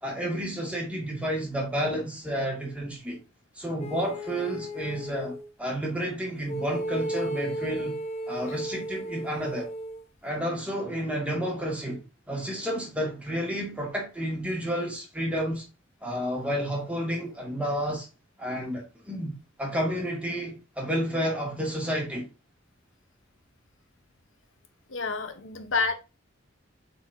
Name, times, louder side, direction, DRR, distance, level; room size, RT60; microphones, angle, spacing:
voice 1, 0.0-3.2 3.6-8.0 8.3-9.7 10.2-15.6 16.0-18.1 18.4-22.3, equal, 5° right, 2.2 m, -31 dB
sound 1, 3.8-5.5 6.5-10.0, right 1 dB, 35° left, 1.0 m, -34 dB
voice 2, 24.9-25.9, left 4 dB, 85° left, 1.1 m, -28 dB
7.8 x 4.4 x 2.8 m
head